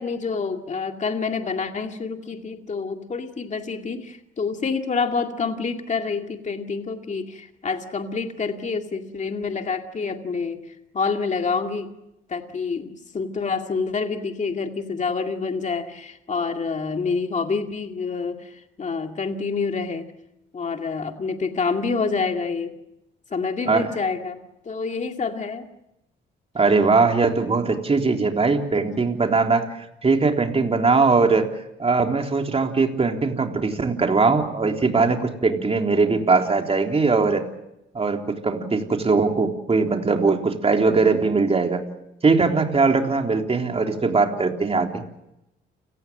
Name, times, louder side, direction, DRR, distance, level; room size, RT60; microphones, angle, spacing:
voice 1, 0.0-11.9 12.3-20.1 20.5-22.7 23.3-25.7, left 4 dB, 35° left, 5 dB, 2.3 m, -27 dB
voice 2, 26.5-31.5 31.8-37.5 37.9-41.8 42.2-45.0, right 4 dB, 30° right, 3 dB, 3.6 m, -20 dB
29.5 x 18.5 x 7.6 m, 0.89 s
cardioid pair, 90°, 20 cm